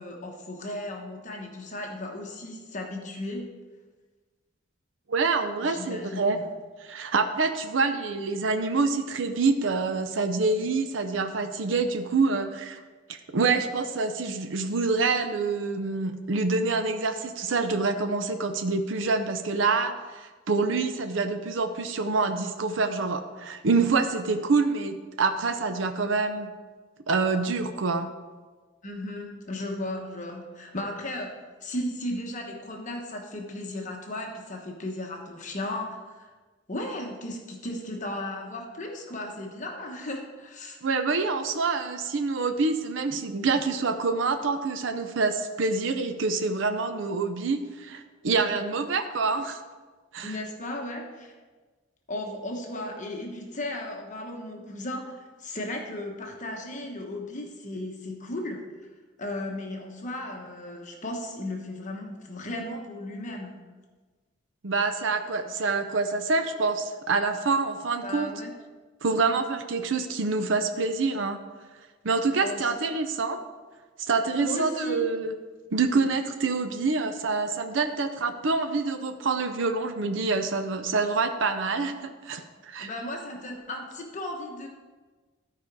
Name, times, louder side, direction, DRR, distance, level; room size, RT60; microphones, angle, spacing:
voice 1, 0.0-3.6 5.6-6.5 28.8-31.3 31.6-36.3 36.7-40.8 50.2-51.3 52.1-58.7 59.2-63.5 68.0-68.5 72.4-72.8 74.4-75.1 82.8-84.7, left 1 dB, 40° left, 1 dB, 1.1 m, -35 dB
voice 2, 5.1-6.4 6.8-12.8 13.1-26.5 27.1-28.1 40.8-49.6 50.1-50.4 64.6-68.3 69.0-71.4 72.0-73.4 74.1-75.3 75.7-82.9, right 4 dB, 85° right, 7 dB, 0.6 m, -26 dB
12.5 x 5.0 x 4.6 m, 1.3 s
head